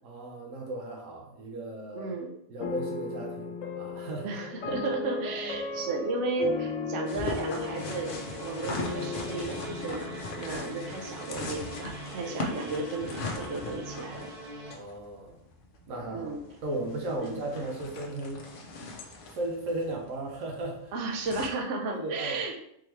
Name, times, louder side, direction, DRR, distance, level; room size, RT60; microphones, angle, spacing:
voice 1, 0.0-2.1 2.5-4.4 14.7-15.4 15.9-16.4 16.6-18.5 19.3-20.9 21.4-21.5 21.9-22.4, right 2 dB, 90° right, 0 dB, 1.2 m, -36 dB
voice 2, 1.9-2.3 4.2-14.3 16.1-16.4 17.2-17.4 20.9-22.5, right 3 dB, 70° right, 2 dB, 0.9 m, -34 dB
sound 1, 2.6-11.8, left 4 dB, 85° left, 1.0 m, -37 dB
sound 2, 7.1-21.5, left 2 dB, 55° left, 0.6 m, -40 dB
sound 3, 7.6-14.7, right 1 dB, 35° right, 0.8 m, -42 dB
3.8 x 3.0 x 3.2 m, 0.75 s
omnidirectional pair, 1.3 m